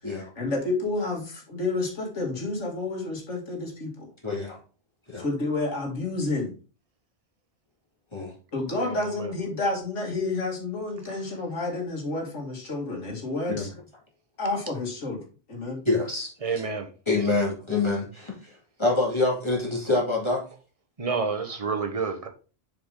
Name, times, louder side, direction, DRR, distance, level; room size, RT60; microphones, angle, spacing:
voice 1, 0.1-4.1 5.2-6.5 8.5-13.7 14.4-15.2 15.5-15.8, left 2 dB, 90° left, 2.3 m, -30 dB
voice 2, 4.2-4.6 5.1-5.3 8.1-8.3 13.5-13.7 15.8-16.3 17.1-20.4, left 3 dB, 25° left, 2.4 m, -26 dB
voice 3, 8.7-9.3 11.1-11.3 16.4-17.3 21.0-22.3, right 4 dB, 30° right, 1.1 m, -30 dB
6.9 x 4.9 x 3.8 m
omnidirectional pair, 1.2 m